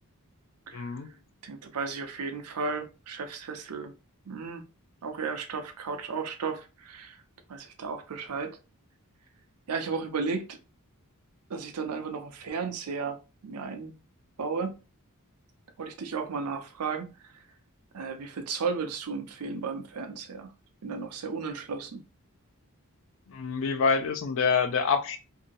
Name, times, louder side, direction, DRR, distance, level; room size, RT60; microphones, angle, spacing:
voice 1, 0.7-1.1 23.3-25.2, left 5 dB, 60° left, 0.4 m, -26 dB
voice 2, 1.4-3.9 4.3-4.6 5.0-7.2 7.5-8.6 9.7-10.6 11.5-13.9 14.4-14.7 15.8-17.3 17.9-20.5 20.8-22.0, right 5 dB, 90° right, 0.6 m, -34 dB
2.7 x 2.6 x 2.8 m
head